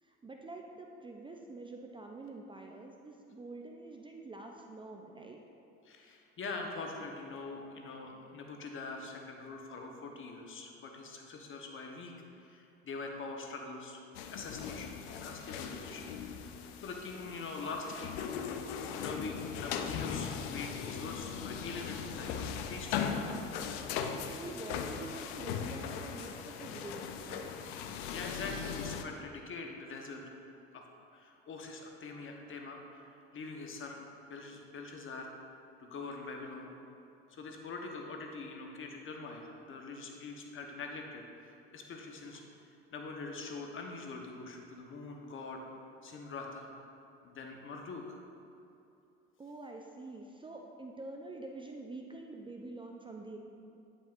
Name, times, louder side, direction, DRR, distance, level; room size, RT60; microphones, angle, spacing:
voice 1, 0.0-5.4 24.2-27.5 49.4-53.4, right 2 dB, 15° right, 1 dB, 0.5 m, -46 dB
voice 2, 5.8-12.1 12.4-14.0 14.3-16.1 16.4-18.6 18.9-23.2 28.1-30.2 30.7-30.8 31.1-33.0 33.3-34.0 34.2-35.5 35.8-36.7 37.3-42.4 42.9-45.6 46.0-46.7 47.2-48.2, left 3 dB, 40° left, 2 dB, 1.0 m, -44 dB
sound 1, 14.1-29.0, left 7 dB, 80° left, 0.5 m, -39 dB
9.0 x 5.4 x 2.5 m, 2.7 s
hypercardioid pair, 75°, 31 cm